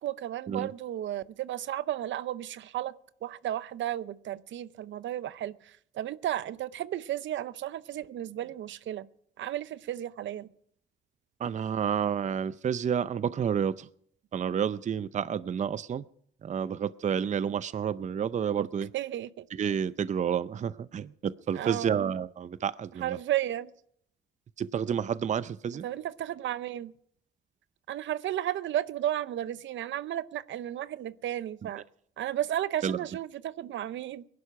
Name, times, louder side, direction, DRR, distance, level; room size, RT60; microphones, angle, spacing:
voice 1, 0.0-2.9 3.2-9.1 9.4-10.5 18.6-18.7 18.9-19.5 21.5-22.1 23.0-23.7 25.8-26.9 27.9-31.8 32.2-34.2, right 12 dB, 70° right, 16 dB, 0.7 m, -33 dB
voice 2, 11.4-13.9 14.3-16.0 16.4-18.9 19.5-23.2 24.6-25.8 32.8-33.0, right 8 dB, 35° right, 16 dB, 0.5 m, -30 dB
20.0 x 11.5 x 5.9 m, 0.67 s
cardioid pair, 90°, 20 cm